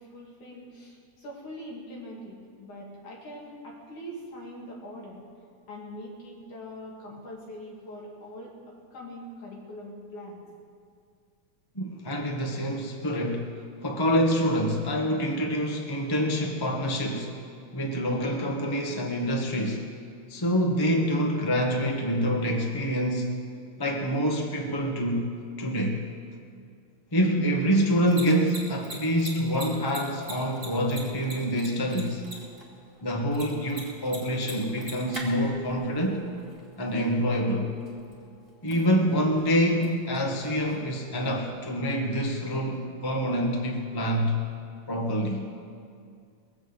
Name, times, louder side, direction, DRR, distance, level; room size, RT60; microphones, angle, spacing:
voice 1, 0.0-5.2 5.7-8.5 8.9-10.4, equal, 85° left, -3 dB, 4.3 m, -42 dB
voice 2, 11.7-13.5 13.8-17.4 17.7-19.9 20.3-23.4 23.8-25.3 25.6-26.0 27.1-32.2 33.0-36.2 36.8-37.7 38.6-44.4 44.9-45.5, equal, 30° left, 1 dB, 0.4 m, -26 dB
Mechanisms, 27.9-41.5, right 1 dB, 15° right, 2.9 m, -45 dB
21.0 x 7.9 x 8.1 m, 2.2 s
omnidirectional pair, 3.4 m